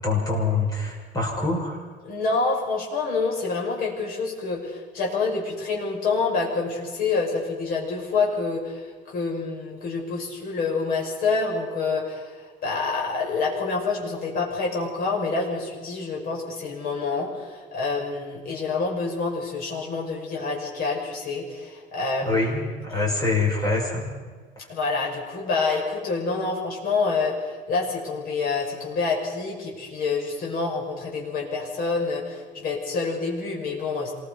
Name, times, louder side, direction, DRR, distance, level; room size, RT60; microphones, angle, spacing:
voice 1, 0.0-1.8 22.2-24.2, left 3 dB, 20° left, -2 dB, 5.8 m, -25 dB
voice 2, 2.1-22.4 22.9-23.0 24.7-34.1, left 4 dB, 50° left, -1 dB, 6.1 m, -27 dB
26.5 x 21.0 x 5.4 m, 1.5 s
cardioid pair, 180°, 20 cm